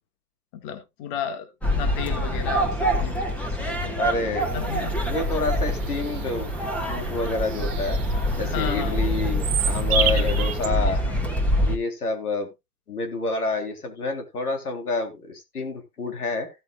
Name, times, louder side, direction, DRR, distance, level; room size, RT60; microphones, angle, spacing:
voice 1, 0.5-1.5 1.8-3.9 4.5-4.9 8.4-9.0 10.0-10.3 10.8-11.1, left 8 dB, 35° left, 7 dB, 2.0 m, -34 dB
sound 1, 1.6-11.8, equal, 5° left, 2.1 m, -25 dB
voice 2, 4.0-4.5 5.0-6.5 6.9-8.0 8.4-11.0 11.6-12.5 12.9-16.5, left 3 dB, 80° left, 5 dB, 3.7 m, -28 dB
Bird vocalization bird call bird song, 4.4-10.7, right 9 dB, 45° right, 1.9 m, -31 dB
16.5 x 7.9 x 2.4 m, 0.23 s
hypercardioid pair, 130°, 44 cm